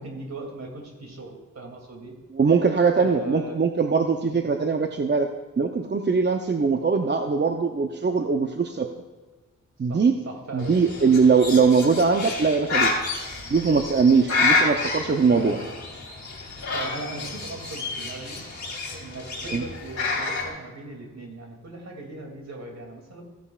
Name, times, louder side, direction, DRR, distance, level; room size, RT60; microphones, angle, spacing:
voice 1, 0.0-2.2 2.9-3.6 4.2-4.5 9.9-10.8 15.3-15.7 16.4-18.4 18.9-23.2, right 2 dB, 55° right, 1 dB, 2.7 m, -39 dB
voice 2, 2.3-5.3 5.6-8.9 9.8-10.1 10.5-13.1 13.5-15.6 19.5-19.6, right 5 dB, 35° right, 5 dB, 0.7 m, -21 dB
Bird, 10.6-20.5, left 3 dB, 60° left, 2.6 m, -29 dB
15.0 x 9.9 x 2.4 m, 1.3 s
cardioid pair, 70°, 32 cm